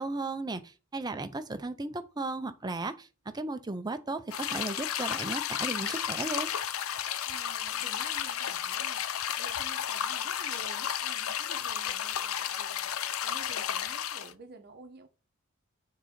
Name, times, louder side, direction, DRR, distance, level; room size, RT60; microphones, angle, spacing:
voice 1, 0.0-6.5, right 2 dB, 20° right, 0.5 m, -35 dB
sound 1, 4.3-14.3, left 9 dB, 65° left, 0.5 m, -33 dB
voice 2, 7.3-9.0 9.4-12.9 13.2-15.1, right 3 dB, 45° right, 0.9 m, -50 dB
6.6 x 3.8 x 5.1 m
head